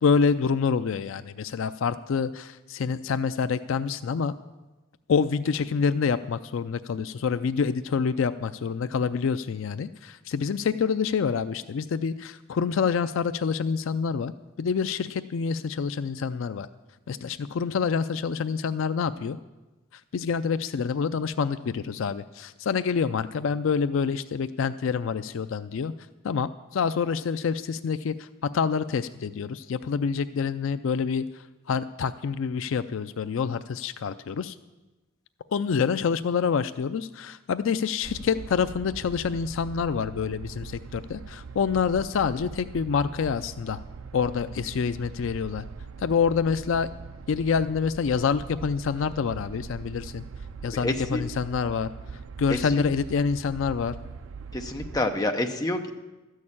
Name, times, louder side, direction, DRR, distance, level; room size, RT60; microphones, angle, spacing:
voice 1, 0.0-4.3 5.1-14.3 14.6-16.7 17.1-19.4 19.9-25.9 26.2-28.3 28.5-34.5 35.5-43.8 44.1-45.6 46.0-46.9 47.3-50.2 50.6-51.9 52.4-54.0, left 6 dB, 65° left, 12 dB, 0.4 m, -27 dB
sound 1, 38.0-55.0, right 5 dB, 70° right, 0.5 m, -42 dB
voice 2, 50.7-51.2 52.5-52.8 54.5-55.9, left 1 dB, 20° left, 4 dB, 0.7 m, -28 dB
13.0 x 6.5 x 8.6 m, 1.1 s
head